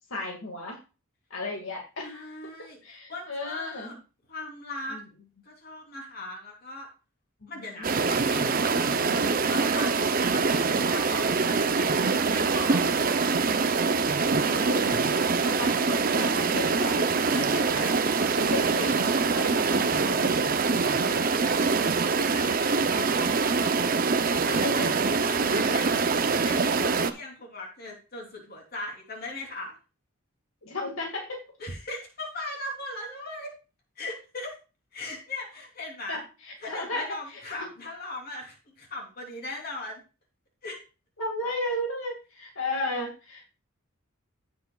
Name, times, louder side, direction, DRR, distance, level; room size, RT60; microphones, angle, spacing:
voice 1, 0.1-0.8 1.3-2.3 2.8-4.0 4.9-5.0 7.4-7.5 7.8-8.1 14.5-15.1 15.4-18.0 18.3-20.3 24.5-24.9 30.6-31.4 36.1-37.7 41.2-43.4, left 2 dB, 75° left, 0 dB, 2.1 m, -34 dB
voice 2, 2.0-2.8 3.1-4.0 4.3-5.0 5.4-6.9 7.5-11.4 12.1-12.8 22.1-29.8 31.6-33.5 33.9-34.6 34.9-36.2 36.6-40.0 40.6-40.8, left 2 dB, 45° left, 0 dB, 3.3 m, -39 dB
sound 1, 7.8-27.1, right 4 dB, 40° right, 0.6 m, -24 dB
16.5 x 6.1 x 2.4 m, 0.32 s
head